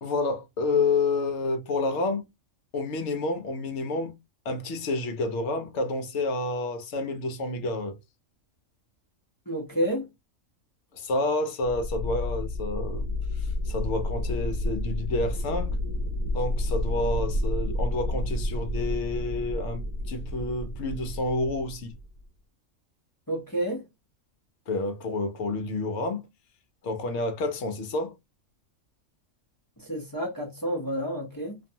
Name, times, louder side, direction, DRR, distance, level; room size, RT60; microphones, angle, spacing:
voice 1, 0.0-2.3 2.7-4.1 4.4-8.0 10.9-15.8 16.3-21.9 24.7-26.3 26.8-28.2, left 2 dB, 65° left, 0.9 m, -29 dB
voice 2, 9.5-10.1 23.3-23.8 29.8-31.6, equal, 20° left, 0.5 m, -30 dB
sound 1, 11.6-22.2, left 1 dB, 65° right, 0.9 m, -30 dB
2.5 x 2.3 x 2.6 m
omnidirectional pair, 1.4 m